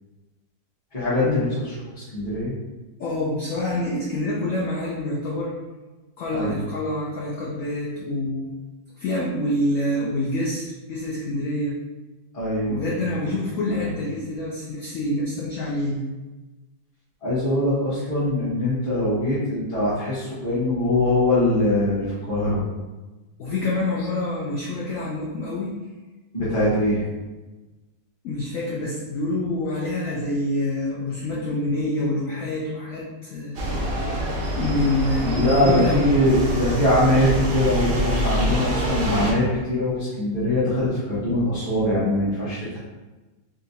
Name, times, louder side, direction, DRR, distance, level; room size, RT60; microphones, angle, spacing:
voice 1, 0.9-1.5 1.9-2.5 6.3-6.6 12.3-12.8 13.4-13.8 17.2-22.6 26.3-27.0 35.3-42.8, left 1 dB, 20° left, -13 dB, 1.1 m, -22 dB
voice 2, 3.0-5.5 6.2-8.5 9.0-11.7 12.6-16.0 23.4-25.7 28.2-33.6 34.6-36.2, left 1 dB, 75° left, -4 dB, 0.7 m, -26 dB
sound 1, 33.5-39.3, right 1 dB, 90° right, 0.5 m, -26 dB
3.7 x 2.6 x 2.8 m, 1.2 s
omnidirectional pair, 2.0 m